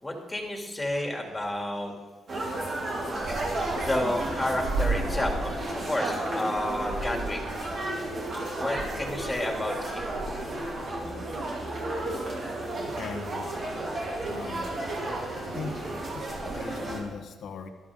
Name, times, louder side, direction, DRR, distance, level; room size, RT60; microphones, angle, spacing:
voice 1, 0.0-1.9 3.7-7.4 8.6-10.1, left 1 dB, 15° left, 1 dB, 2.6 m, -31 dB
sound 1, 2.3-17.0, right 2 dB, 50° right, 3.3 m, -32 dB
voice 2, 12.8-13.5 14.2-15.2 15.5-15.7 16.1-17.7, left 5 dB, 65° left, 5 dB, 1.1 m, -40 dB
12.5 x 12.0 x 3.7 m, 1.3 s
cardioid pair, 90°, 0 cm